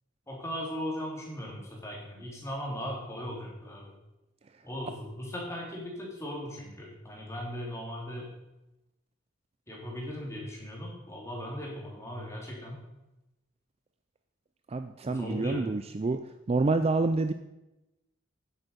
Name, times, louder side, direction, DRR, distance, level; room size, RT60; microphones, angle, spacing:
voice 1, 0.3-3.9 4.6-8.3 9.7-12.7 15.0-15.7, equal, 15° left, -2 dB, 2.6 m, -38 dB
voice 2, 14.7-16.2 16.5-17.3, right 3 dB, 30° right, 9 dB, 0.3 m, -27 dB
10.0 x 8.2 x 5.3 m, 0.96 s
head